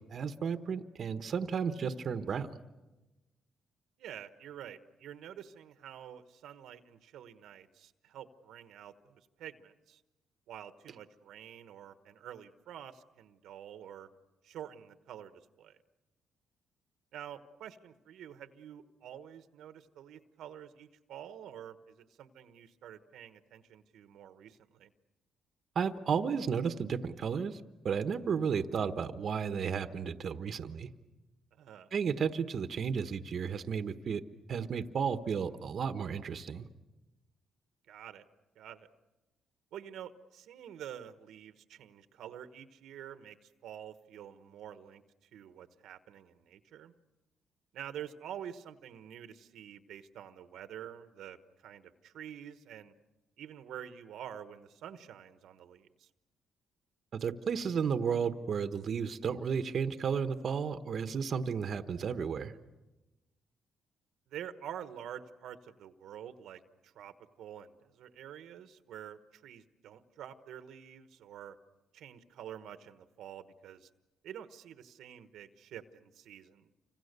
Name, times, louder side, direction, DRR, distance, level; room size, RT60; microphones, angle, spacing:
voice 1, 0.1-2.5 25.7-27.6 27.8-30.9 31.9-34.2 34.5-36.6 57.1-62.5, right 6 dB, 55° right, 9 dB, 1.2 m, -33 dB
voice 2, 4.0-10.0 10.5-14.1 14.4-15.8 17.1-24.9 31.5-31.9 37.9-38.2 38.6-38.9 39.7-45.0 45.3-46.9 47.7-52.9 53.4-56.1 64.3-71.6 71.9-73.9 74.2-76.7, right 10 dB, 80° right, 10 dB, 1.3 m, -48 dB
29.5 x 26.0 x 6.8 m, 1.1 s
cardioid pair, 90°, 0 cm